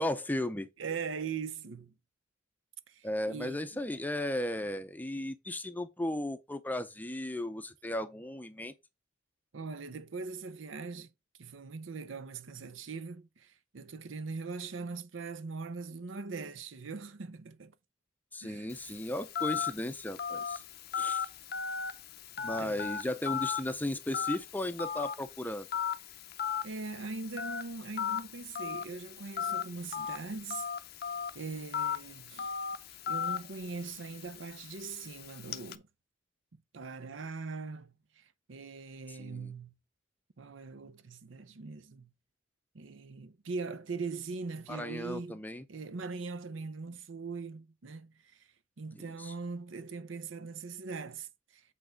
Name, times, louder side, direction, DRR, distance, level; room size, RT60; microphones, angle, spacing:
voice 1, 0.0-0.7 3.0-8.7 18.3-20.6 20.9-21.3 22.4-25.7 39.2-39.5 44.7-45.6 49.0-49.3, left 1 dB, 10° left, 0.5 m, -35 dB
voice 2, 0.8-1.9 2.9-3.8 9.5-11.1 11.4-17.7 18.4-18.8 22.4-22.9 26.6-30.7 31.3-32.5 33.1-35.8 36.7-39.7 40.4-42.1 42.7-45.4 45.7-48.4 48.8-51.6, right 4 dB, 70° right, 0.6 m, -41 dB
Telephone, 18.7-35.8, left 7 dB, 50° left, 0.6 m, -37 dB
8.4 x 3.4 x 5.1 m
head